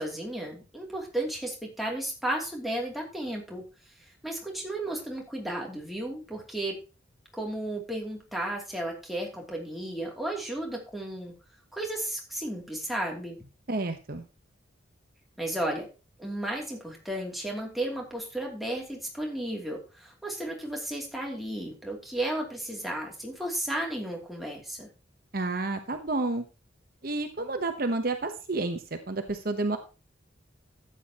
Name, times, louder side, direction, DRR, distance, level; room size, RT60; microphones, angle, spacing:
voice 1, 0.0-3.6 4.0-6.8 7.3-11.3 11.7-13.5 15.4-15.9 16.2-24.9, right 1 dB, ahead, -2 dB, 2.8 m, -34 dB
voice 2, 13.7-14.2 25.3-26.4 27.0-29.8, right 2 dB, 50° right, 7 dB, 1.0 m, -30 dB
13.0 x 9.4 x 3.0 m, 0.31 s
head